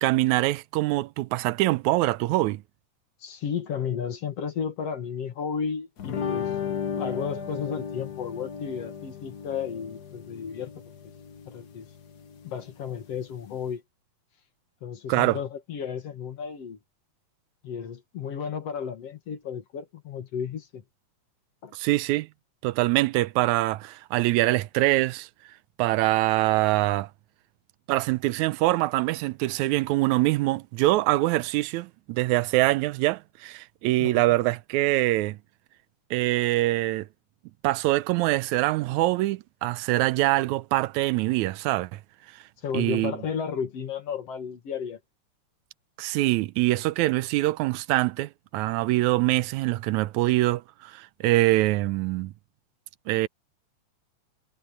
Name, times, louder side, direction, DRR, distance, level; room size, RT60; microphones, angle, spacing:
voice 1, 0.0-2.6 15.1-15.4 21.7-22.3 22.6-25.3 25.8-27.1 27.9-35.4 36.1-37.1 37.6-42.0 42.7-43.2 46.0-52.3 53.1-53.3, right 18 dB, 80° right, 1.9 m, -24 dB
voice 2, 3.2-6.5 7.0-10.8 11.5-11.9 12.4-13.8 14.8-16.8 17.6-20.8 21.6-21.7 34.0-34.1 42.6-45.0, left 7 dB, 55° left, 2.5 m, -33 dB
sound 1, 6.0-13.7, left 7 dB, 85° left, 0.8 m, -35 dB
omnidirectional pair, 3.6 m